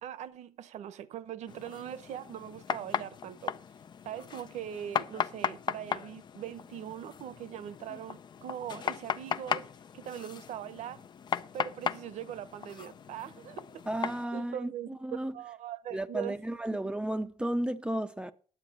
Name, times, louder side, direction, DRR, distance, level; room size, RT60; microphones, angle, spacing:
voice 1, 0.0-3.5 4.0-9.7 9.9-11.0 11.5-13.6 14.3-16.4 16.8-16.9, right 10 dB, 70° right, 1.0 m, -41 dB
sound 1, 1.5-14.2, left 7 dB, 40° left, 0.5 m, -37 dB
voice 2, 13.9-15.3 15.9-18.3, right 1 dB, 10° right, 0.6 m, -33 dB
10.0 x 8.1 x 6.7 m
cardioid pair, 125°, 12 cm